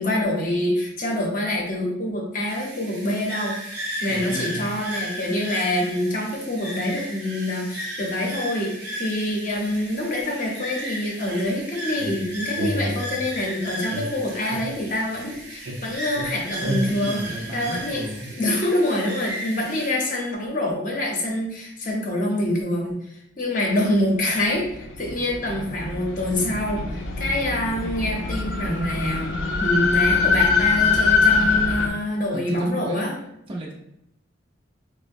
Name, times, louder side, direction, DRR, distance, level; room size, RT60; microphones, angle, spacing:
voice 1, 0.0-3.6 4.0-17.2 17.5-23.0 23.4-33.1, left 1 dB, 45° left, 0 dB, 0.7 m, -26 dB
sound 1, 2.5-19.9, equal, 60° right, 0.8 m, -35 dB
voice 2, 4.1-4.7 16.8-18.3 32.3-33.1 33.5-33.7, right 1 dB, 30° right, -2 dB, 0.6 m, -33 dB
sound 2, 12.0-13.5 13.9-15.3 15.7-18.2, equal, 90° right, 0.6 m, -32 dB
sound 3, 24.4-31.9, left 5 dB, 90° left, 0.5 m, -23 dB
4.8 x 2.1 x 2.5 m, 0.79 s
head